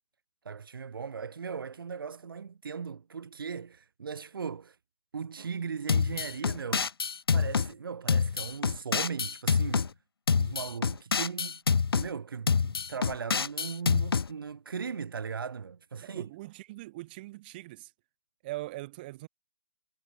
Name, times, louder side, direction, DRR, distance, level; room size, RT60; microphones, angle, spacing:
voice 1, 0.4-4.8 5.1-6.9 7.3-9.9 10.4-16.3, right 6 dB, 70° right, 2.9 m, -38 dB
sound 1, 5.9-7.7 8.1-9.9 10.3-12.1 12.5-14.3, left 5 dB, 80° left, 1.6 m, -27 dB
voice 2, 16.0-17.9 18.4-19.3, right 19 dB, 25° right, 5.3 m, -41 dB
hypercardioid pair, 170°, 12 cm